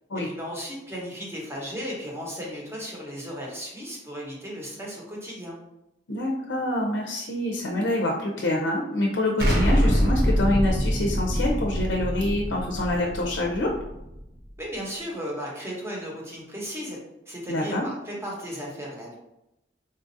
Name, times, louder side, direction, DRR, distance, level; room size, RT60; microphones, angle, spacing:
voice 1, 0.1-5.6 14.6-17.0 17.3-19.2, equal, 15° right, -3 dB, 0.9 m, -35 dB
voice 2, 6.1-13.7 17.5-17.8, left 1 dB, 75° left, 0 dB, 0.5 m, -26 dB
Explosion, 9.4-14.2, equal, 60° right, 0.8 m, -24 dB
3.9 x 2.5 x 2.6 m, 0.88 s
head